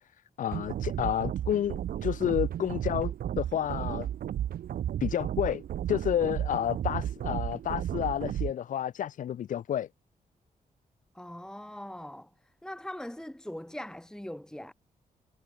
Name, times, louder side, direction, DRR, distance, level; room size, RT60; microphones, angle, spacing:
voice 1, 0.4-4.1 5.0-5.6 5.9-9.9, left 10 dB, 60° left, 0.5 m, -30 dB
sound 1, 0.5-8.5, right 11 dB, 80° right, 1.0 m, -33 dB
voice 2, 11.1-12.3 12.6-14.7, left 1 dB, 5° left, 1.9 m, -41 dB
cardioid pair, 95°, 15 cm